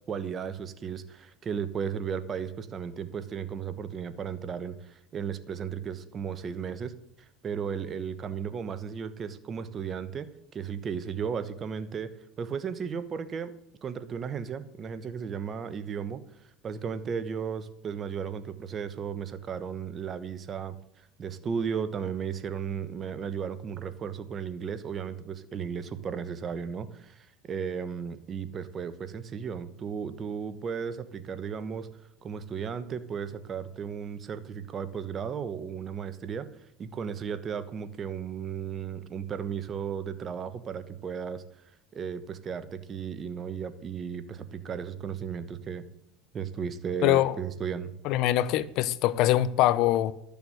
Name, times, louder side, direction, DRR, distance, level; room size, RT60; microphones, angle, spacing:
voice 1, 0.1-6.9 7.4-12.1 12.4-13.5 13.8-16.2 16.6-20.8 21.2-31.9 32.2-36.5 36.8-41.4 41.9-45.9 46.3-47.9, right 7 dB, 35° right, 1.2 m, -35 dB
voice 2, 47.0-47.4 48.0-50.1, left 14 dB, 60° left, 0.6 m, -23 dB
12.5 x 7.0 x 7.9 m
supercardioid pair, 100°, 0 cm